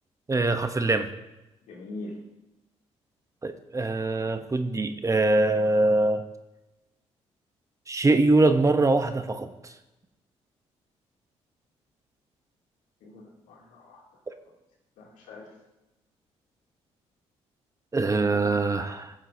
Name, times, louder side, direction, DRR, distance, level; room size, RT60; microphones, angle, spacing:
voice 1, 0.3-1.1 3.4-6.2 7.9-9.7 17.9-19.1, right 2 dB, 25° right, 8 dB, 0.9 m, -23 dB
voice 2, 1.7-2.1 13.0-14.0 15.0-15.5 18.3-18.4, left 2 dB, 85° left, -2 dB, 2.7 m, -42 dB
14.5 x 7.3 x 2.7 m, 0.98 s
cardioid pair, 70°, 12 cm